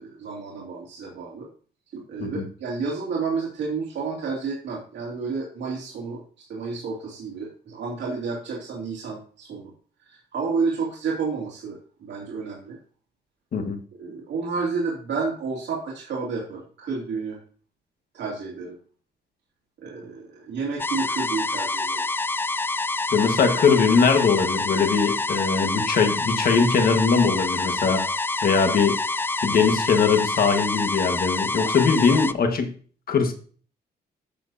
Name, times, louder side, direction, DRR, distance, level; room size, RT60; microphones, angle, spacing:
voice 1, 0.0-1.5 1.9-6.2 6.5-9.7 10.1-12.8 14.0-17.4 18.1-18.7 19.8-22.0, right 4 dB, 80° right, -4 dB, 2.6 m, -30 dB
sound 1, 20.8-32.3, left 3 dB, 10° left, 0.3 m, -27 dB
voice 2, 23.1-28.0 28.4-29.0 29.4-32.7 33.1-33.3, left 5 dB, 55° left, 5 dB, 1.6 m, -21 dB
12.0 x 7.2 x 2.8 m, 0.43 s
cardioid pair, 135°, 18 cm